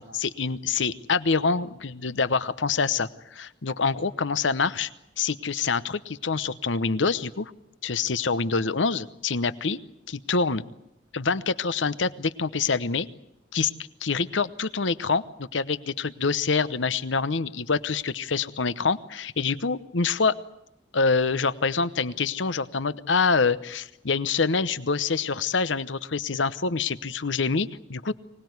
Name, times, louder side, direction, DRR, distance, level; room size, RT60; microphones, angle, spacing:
voice 1, 0.0-4.9 5.2-7.5 7.8-9.8 10.1-10.6 11.1-13.1 13.5-13.7 14.0-20.3 20.9-28.1, left 4 dB, 80° left, 15 dB, 0.9 m, -26 dB
24.5 x 19.0 x 9.5 m, 0.80 s
head